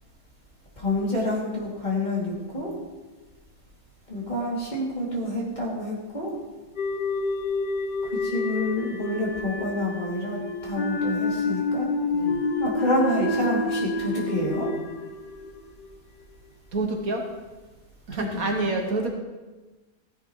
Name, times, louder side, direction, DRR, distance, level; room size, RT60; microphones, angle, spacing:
voice 1, 0.8-2.7 4.1-6.3 8.0-11.9 12.6-14.7 18.1-18.5, left 1 dB, 25° left, -5 dB, 2.8 m, -28 dB
sound 1, 6.8-16.0, left 3 dB, 55° left, 0.5 m, -29 dB
voice 2, 12.0-12.4 16.7-17.3 18.1-19.1, right 2 dB, 60° right, 2 dB, 1.5 m, -28 dB
15.0 x 10.0 x 3.1 m, 1.2 s
omnidirectional pair, 1.7 m